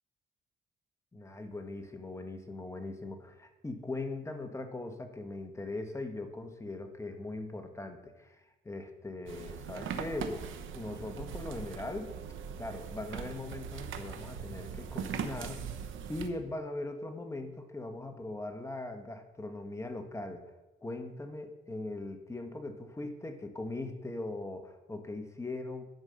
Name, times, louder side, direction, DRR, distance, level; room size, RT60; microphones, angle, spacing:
voice 1, 1.1-10.5 10.7-12.1 12.6-15.7 16.1-20.4 20.8-25.9, left 2 dB, 15° left, 6 dB, 1.2 m, -40 dB
sound 1, 9.3-16.3, right 7 dB, 80° right, 1.0 m, -40 dB
10.5 x 5.4 x 6.4 m, 1.1 s
cardioid pair, 90°, 20 cm